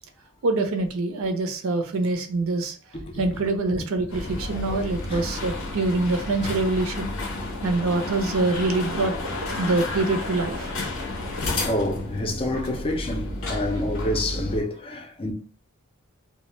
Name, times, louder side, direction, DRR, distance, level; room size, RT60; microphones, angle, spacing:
voice 1, 0.4-2.8 3.2-7.1 7.6-9.1 9.5-10.8, right 2 dB, 75° right, 0.5 m, -25 dB
sound 1, 4.1-14.6, left 2 dB, 85° left, 0.7 m, -31 dB
voice 2, 11.6-15.3, left 1 dB, 25° left, 0.4 m, -28 dB
2.2 x 2.0 x 3.0 m
head